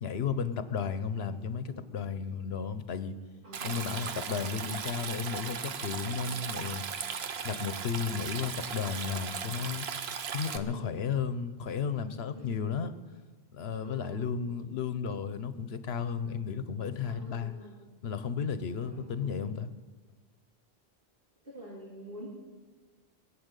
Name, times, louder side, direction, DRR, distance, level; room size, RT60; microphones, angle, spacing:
voice 1, 0.0-3.1 3.6-6.8 7.4-9.9 10.3-12.9 13.5-17.5 18.0-19.7, left 6 dB, 80° left, 12 dB, 1.1 m, -34 dB
voice 2, 3.4-3.9 10.5-11.0 12.3-12.7 13.8-14.3 16.8-17.7 18.7-19.5 21.4-22.3, equal, 60° right, -8 dB, 3.8 m, -47 dB
Stream, 3.5-10.6, right 6 dB, 80° right, 1.1 m, -37 dB
21.5 x 7.6 x 8.2 m, 1.4 s
omnidirectional pair, 1.0 m